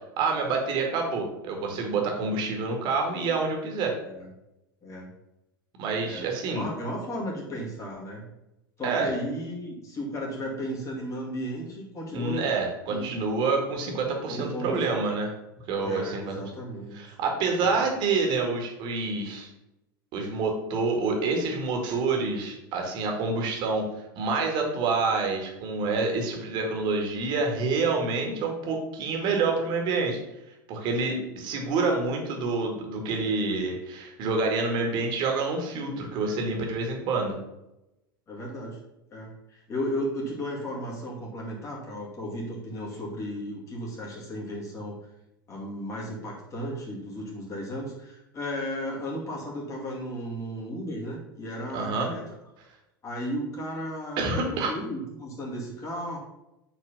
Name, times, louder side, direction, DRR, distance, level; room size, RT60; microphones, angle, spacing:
voice 1, 0.2-4.0 5.8-6.7 8.8-9.1 12.1-15.3 15.7-16.4 16.9-19.5 20.1-23.9 24.2-30.2 30.7-37.4 51.7-52.1 54.2-54.7, right 4 dB, 40° right, 2 dB, 2.0 m, -27 dB
voice 2, 6.0-8.2 8.8-12.4 12.9-13.1 14.3-14.9 15.8-17.0 17.6-17.8 38.3-38.8 39.1-45.0 45.5-52.2 53.0-56.2, equal, 25° left, -3 dB, 2.3 m, -35 dB
8.1 x 4.2 x 5.4 m, 0.91 s
figure-of-eight pair, 85°, 12 cm